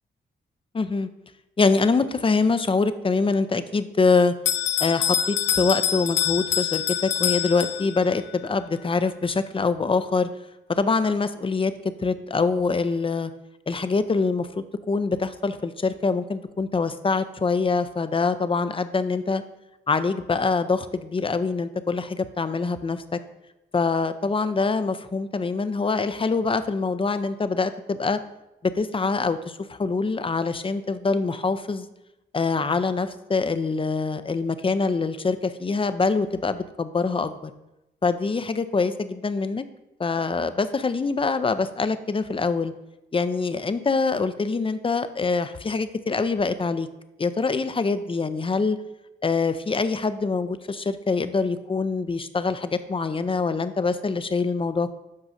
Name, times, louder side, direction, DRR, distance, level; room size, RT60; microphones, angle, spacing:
voice 1, 0.7-1.1 1.6-4.3 4.8-10.3 10.7-11.7 12.0-13.3 13.7-19.4 19.9-23.2 23.7-28.2 28.8-31.9 32.3-37.5 38.0-39.6 40.0-42.7 43.1-46.9 47.2-48.8 49.2-54.9, left 4 dB, 30° left, 12 dB, 0.6 m, -24 dB
Bell, 4.4-8.2, left 9 dB, 75° left, 0.4 m, -25 dB
12.0 x 4.7 x 2.7 m, 0.91 s
cardioid pair, 60°, 19 cm